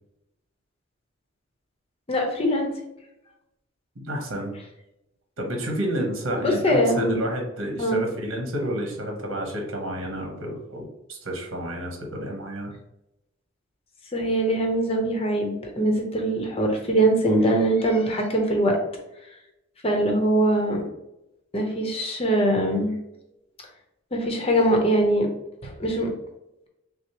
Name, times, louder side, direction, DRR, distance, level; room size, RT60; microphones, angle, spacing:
voice 1, 2.1-2.7 6.4-7.2 7.8-8.0 14.1-18.8 19.8-20.8 21.5-22.9 24.1-25.3 25.6-26.1, right 1 dB, 30° left, 2 dB, 0.8 m, -22 dB
voice 2, 3.9-4.5 5.4-12.7, equal, 75° right, 2 dB, 1.1 m, -30 dB
6.0 x 2.0 x 2.9 m, 0.88 s
head